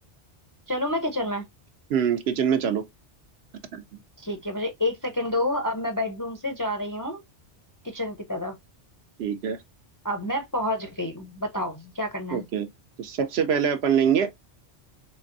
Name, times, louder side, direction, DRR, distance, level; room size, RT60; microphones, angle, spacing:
voice 1, 0.7-1.5 4.2-7.2 7.8-8.6 10.0-12.5, left 1 dB, 25° left, 0.4 m, -29 dB
voice 2, 1.9-2.8 3.7-3.8 9.2-9.6 12.3-12.7 13.0-14.4, right 7 dB, 70° right, 0.9 m, -24 dB
3.9 x 3.4 x 2.5 m
omnidirectional pair, 1.2 m